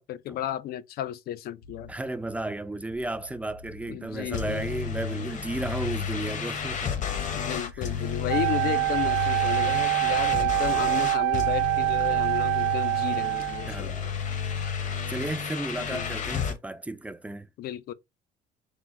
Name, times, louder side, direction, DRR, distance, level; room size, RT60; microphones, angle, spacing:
voice 1, 0.0-1.9 3.9-4.7 7.3-14.1 15.8-16.3 17.6-17.9, left 12 dB, 65° left, 0.5 m, -34 dB
sound 1, 1.6-14.2, left 3 dB, 85° left, 0.9 m, -50 dB
voice 2, 1.9-7.0 7.7-7.9 13.6-14.2 14.5-17.5, right 2 dB, 10° right, 0.4 m, -34 dB
sound 2, 4.3-16.6, left 7 dB, 45° left, 0.9 m, -32 dB
Wind instrument woodwind instrument, 8.3-13.8, right 24 dB, 90° right, 0.4 m, -25 dB
3.8 x 2.1 x 4.4 m
cardioid pair, 110°, 17 cm